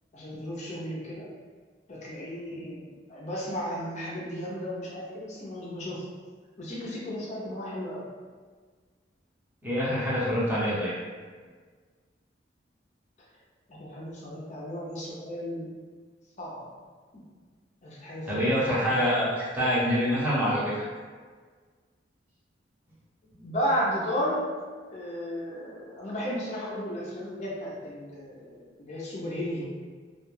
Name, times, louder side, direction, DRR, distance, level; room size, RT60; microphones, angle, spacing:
voice 1, 0.1-1.3 1.9-6.0 6.6-8.1 10.0-10.1 13.7-15.7 16.4-16.7 17.8-19.0 23.4-24.4 24.9-29.6, equal, 40° left, -5 dB, 0.5 m, -34 dB
voice 2, 9.6-10.9 18.3-20.7, equal, 10° right, -9 dB, 0.7 m, -25 dB
2.4 x 2.3 x 3.1 m, 1.5 s
head